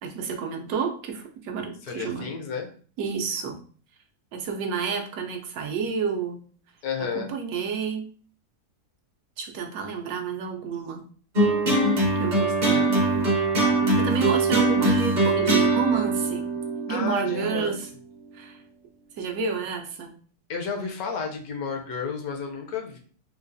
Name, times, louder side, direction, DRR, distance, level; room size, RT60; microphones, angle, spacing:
voice 1, 0.0-2.3 3.0-3.6 4.3-6.4 7.1-8.1 9.4-11.0 12.2-12.9 14.0-16.5 16.9-17.9 18.3-18.6 19.2-20.1, right 6 dB, 75° right, 3 dB, 1.0 m, -30 dB
voice 2, 1.8-2.7 6.8-7.3 16.9-17.8 20.5-23.0, left 5 dB, 70° left, 2 dB, 1.1 m, -31 dB
sound 1, 11.3-17.8, right 2 dB, 45° right, 0.6 m, -22 dB
3.8 x 2.3 x 2.5 m, 0.43 s
omnidirectional pair, 1.7 m